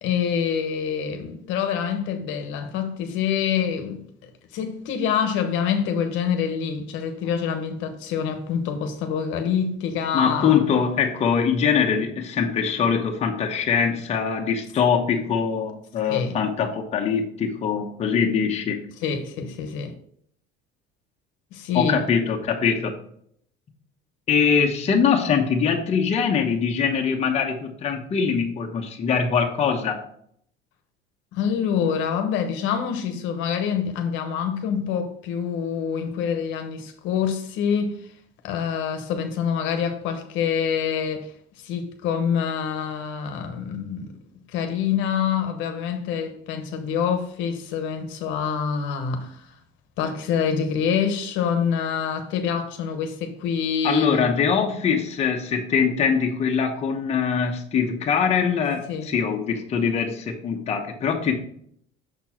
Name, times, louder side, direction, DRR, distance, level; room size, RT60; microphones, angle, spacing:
voice 1, 0.0-10.6 16.1-16.4 19.0-19.9 21.5-22.0 31.3-38.0 38.4-41.3 41.6-44.1 44.5-49.5 50.0-54.2 58.9-59.1, left 7 dB, 65° left, 1.1 m, -26 dB
voice 2, 10.1-18.8 21.7-22.9 24.3-30.0 53.8-61.4, left 6 dB, 30° left, 1.0 m, -23 dB
6.6 x 4.4 x 4.4 m
cardioid pair, 140°, 21 cm